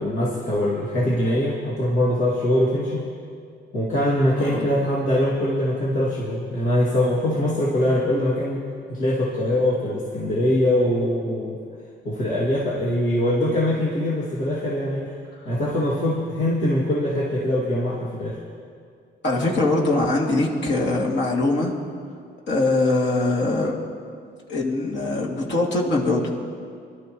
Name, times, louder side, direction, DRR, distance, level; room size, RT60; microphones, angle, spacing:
voice 1, 0.0-3.0 3.7-11.6 12.0-15.1 15.5-18.4, left 1 dB, 85° left, -7 dB, 2.5 m, -23 dB
voice 2, 19.2-21.7 22.5-23.8 24.5-26.3, left 2 dB, 65° left, -2 dB, 2.5 m, -22 dB
24.0 x 12.5 x 3.1 m, 2.2 s
cardioid pair, 90°, 20 cm